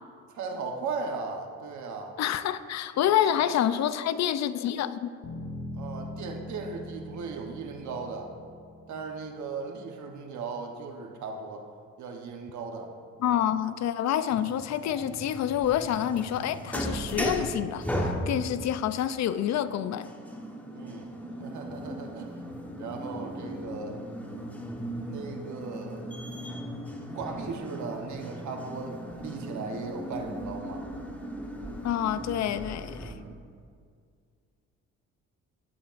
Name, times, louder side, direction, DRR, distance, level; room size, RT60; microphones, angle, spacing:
voice 1, 0.3-2.2 3.3-3.4 5.8-8.3 8.9-11.7 12.0-12.9 13.2-13.4 18.3-18.5 20.7-21.1 21.4-22.5 22.7-24.0 25.1-26.1 27.1-30.9 33.0-33.4, right 4 dB, 70° right, 2 dB, 1.1 m, -37 dB
voice 2, 2.2-5.1 13.2-20.1 31.8-33.1, left 10 dB, 65° left, 13 dB, 0.5 m, -28 dB
Bass guitar, 5.2-9.6, left 1 dB, 85° left, 1.5 m, -41 dB
sound 1, 14.3-33.1, equal, 5° left, 1.2 m, -37 dB
16.0 x 8.8 x 2.6 m, 2.1 s
cardioid pair, 90°, 30 cm